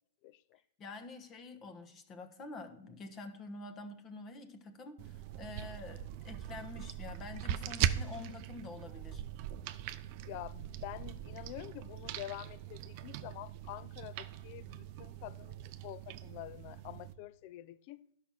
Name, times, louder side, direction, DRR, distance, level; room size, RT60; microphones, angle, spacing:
voice 1, 0.2-0.6 10.2-15.6 15.8-18.0, left 16 dB, 40° left, 0.5 m, -47 dB
voice 2, 0.8-9.2, left 3 dB, 25° left, 1.2 m, -47 dB
sound 1, 5.0-17.1, right 11 dB, 40° right, 0.6 m, -40 dB
11.0 x 5.7 x 6.1 m
hypercardioid pair, 150°, 0 cm